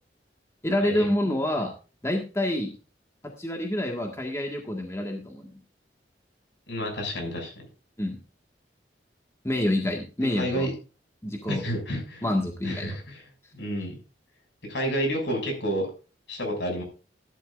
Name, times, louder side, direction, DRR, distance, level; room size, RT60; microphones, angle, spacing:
voice 1, 0.6-1.7 2.0-2.7 3.4-5.5 8.0-8.2 9.4-10.7 11.2-11.6 12.2-13.0, left 1 dB, 15° left, 1 dB, 1.7 m, -27 dB
voice 2, 6.7-7.5 10.3-10.7 11.5-12.3 12.6-13.2 13.5-14.0 14.6-15.9 16.3-16.8, equal, 80° left, 2 dB, 6.8 m, -30 dB
14.5 x 12.0 x 2.6 m, 0.33 s
head